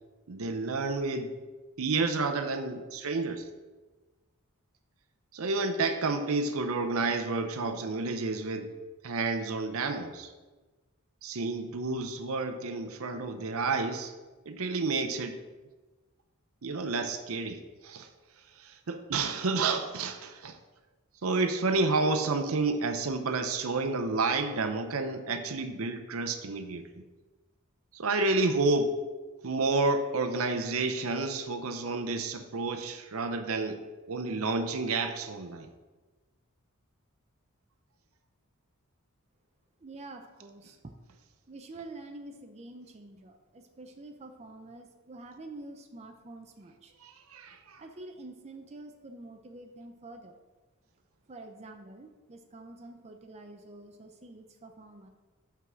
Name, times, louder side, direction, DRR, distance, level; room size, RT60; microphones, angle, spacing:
voice 1, 0.3-1.4 1.8-3.4 5.3-8.7 9.0-10.3 11.2-14.1 14.5-15.4 16.6-18.1 18.6-20.6 21.2-27.0 27.9-29.0 29.4-33.8 34.1-35.7 47.0-47.8, right 3 dB, 75° right, 7 dB, 0.7 m, -30 dB
voice 2, 39.8-40.9 41.5-46.9 47.8-50.3 51.3-55.1, right 2 dB, 30° right, 4 dB, 0.5 m, -47 dB
5.8 x 4.7 x 6.1 m, 1.2 s
head